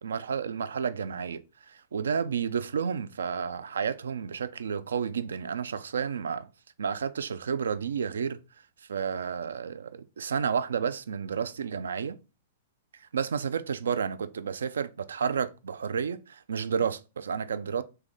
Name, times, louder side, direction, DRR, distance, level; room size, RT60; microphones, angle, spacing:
voice 1, 0.0-6.5 6.8-8.4 8.9-12.2 13.0-17.8, right 6 dB, 65° right, 0.3 m, -31 dB
3.4 x 3.2 x 3.9 m
figure-of-eight pair, 105°, 0 cm